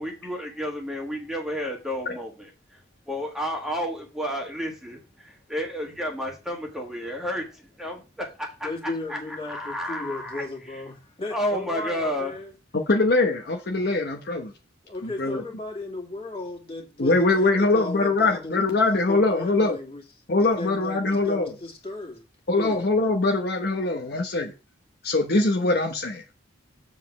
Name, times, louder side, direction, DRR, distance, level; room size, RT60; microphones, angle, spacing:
voice 1, 0.0-2.8 3.1-10.4 11.3-12.3, equal, ahead, 1.6 m, -31 dB
voice 2, 8.6-12.5 14.8-18.7 19.1-20.0 20.6-22.2 22.5-22.9, left 2 dB, 30° left, 2.4 m, -35 dB
voice 3, 12.9-14.5 15.0-15.4 17.0-19.8 20.3-21.5 22.5-24.5 25.0-26.2, left 2 dB, 55° left, 0.9 m, -22 dB
7.3 x 4.2 x 5.8 m
head